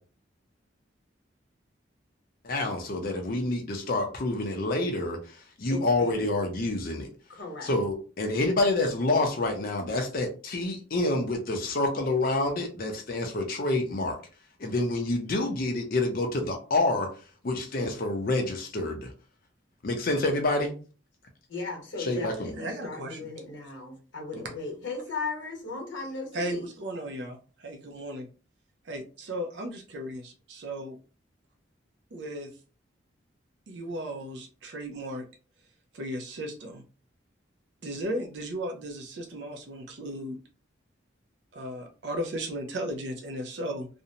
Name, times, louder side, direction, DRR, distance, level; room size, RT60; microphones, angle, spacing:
voice 1, 2.4-7.1 7.6-14.2 14.6-17.1 17.4-19.1 19.8-20.7 22.0-22.5, left 2 dB, 50° left, 3 dB, 0.5 m, -28 dB
voice 2, 5.7-6.3 7.3-7.7 21.5-26.7, left 3 dB, 70° left, 0 dB, 1.0 m, -37 dB
voice 3, 22.6-23.3 24.3-24.4 26.3-28.3 28.8-31.0 32.1-32.5 33.7-35.2 35.9-36.8 37.8-40.4 41.5-43.9, right 1 dB, 65° right, 3 dB, 0.4 m, -35 dB
2.5 x 2.1 x 2.8 m, 0.36 s
head